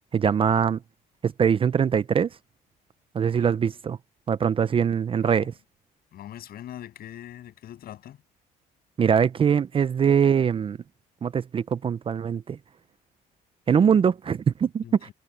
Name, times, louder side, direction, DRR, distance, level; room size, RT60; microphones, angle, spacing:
voice 1, 0.1-0.8 1.2-2.3 3.1-4.0 4.3-5.5 9.0-10.8 11.2-12.6 13.7-15.1, right 7 dB, 30° right, 0.6 m, -22 dB
voice 2, 5.1-5.5 6.1-8.2 14.8-14.9, left 12 dB, 65° left, 7.6 m, -42 dB
cardioid pair, 110°, 17 cm